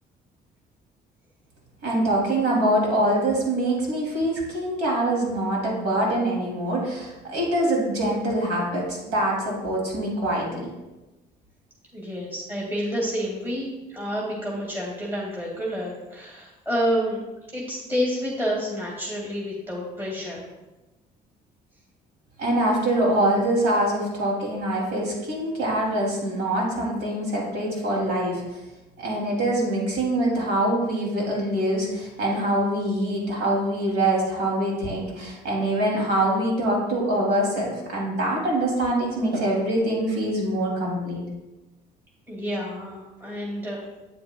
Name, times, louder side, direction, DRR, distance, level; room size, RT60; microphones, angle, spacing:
voice 1, 1.8-10.7 22.4-28.4 29.0-41.2, right 1 dB, 90° right, -2 dB, 2.7 m, -24 dB
voice 2, 11.9-13.7 13.9-17.2 17.5-20.5 42.3-43.8, equal, 10° right, -4 dB, 2.0 m, -29 dB
8.7 x 8.5 x 2.3 m, 1.1 s
cardioid pair, 110°, 17 cm